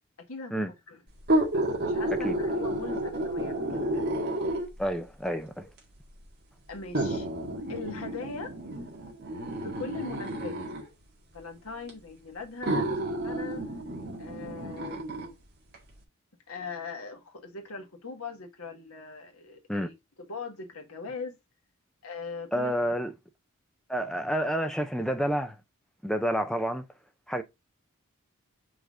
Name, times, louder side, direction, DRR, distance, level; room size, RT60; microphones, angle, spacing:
voice 1, 0.3-1.0 1.5-4.4 6.7-7.3 7.7-8.5 9.6-10.6 11.3-13.6 14.2-15.4 16.5-21.4 22.0-22.7, left 4 dB, 75° left, 1.5 m, -40 dB
sound 1, 1.2-4.9 5.8-5.9 6.9-10.9 11.9-12.0 12.6-15.3 15.7-15.8, right 1 dB, 45° right, 2.0 m, -30 dB
voice 2, 4.8-5.7 19.7-19.9 22.5-23.1 23.9-25.6 26.0-26.8 27.3-27.4, equal, 5° left, 0.7 m, -29 dB
5.0 x 4.0 x 5.0 m
head